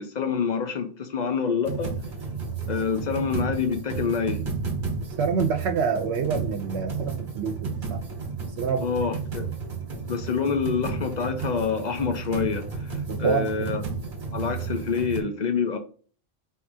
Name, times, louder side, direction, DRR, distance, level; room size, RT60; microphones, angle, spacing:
voice 1, 0.0-1.9 2.7-4.4 8.8-9.5 10.1-13.8 14.3-15.8, left 6 dB, 55° left, 0.5 m, -27 dB
sound 1, 1.7-15.2, right 5 dB, 50° right, 1.2 m, -32 dB
voice 2, 5.2-8.0 8.6-8.9 13.1-13.8, right 6 dB, 70° right, 0.8 m, -27 dB
4.6 x 2.6 x 2.6 m
omnidirectional pair, 1.2 m